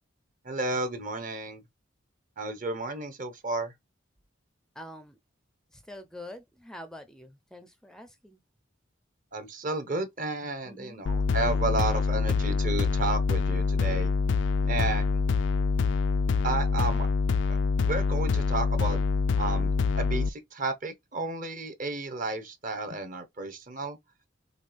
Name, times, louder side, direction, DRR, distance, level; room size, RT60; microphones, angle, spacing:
voice 1, 0.4-1.6 2.4-3.7 9.3-14.1 14.7-15.3 16.4-17.1 17.8-19.0 19.4-24.0, right 3 dB, 45° right, 1.0 m, -32 dB
voice 2, 4.7-5.2 5.7-8.4 10.6-11.0, left 1 dB, 5° left, 0.5 m, -46 dB
sound 1, 11.1-20.3, left 4 dB, 65° left, 0.3 m, -25 dB
6.3 x 2.4 x 3.4 m
head